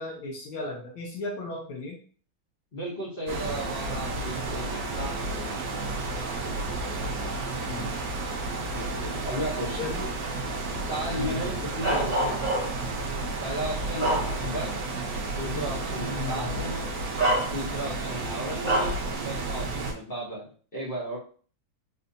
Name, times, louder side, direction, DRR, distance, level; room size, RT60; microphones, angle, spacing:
voice 1, 0.0-2.0 7.7-8.1 9.7-10.2 11.2-11.4 16.0-16.5, left 3 dB, 75° left, -2 dB, 1.5 m, -36 dB
voice 2, 2.7-5.6 8.7-9.9 10.9-12.7 13.4-14.8 15.3-16.9 17.5-19.0 19.2-21.2, equal, 55° left, -5 dB, 0.5 m, -35 dB
sound 1, 3.3-19.9, right 3 dB, 65° right, 0.9 m, -32 dB
Bark, 11.8-12.9 13.5-14.7 15.2-15.3 16.5-16.6 17.2-17.9 18.6-19.1, right 1 dB, 25° right, 1.7 m, -27 dB
4.2 x 2.7 x 2.6 m, 0.43 s
omnidirectional pair, 2.4 m